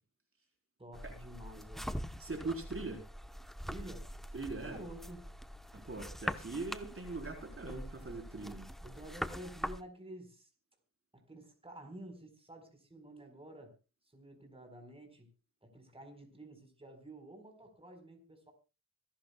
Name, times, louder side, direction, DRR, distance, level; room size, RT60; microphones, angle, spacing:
voice 1, 0.8-1.9 3.7-4.1 4.6-5.3 8.8-10.5 11.3-13.7 14.1-15.3 15.6-18.5, right 1 dB, 15° right, 5 dB, 4.4 m, -50 dB
sound 1, 0.9-9.8, equal, ahead, 0.9 m, -43 dB
voice 2, 2.2-3.0 4.3-4.8 5.8-8.7, right 3 dB, 40° right, 2 dB, 4.1 m, -41 dB
26.0 x 11.5 x 2.3 m, 0.31 s
wide cardioid pair, 100°, 33 cm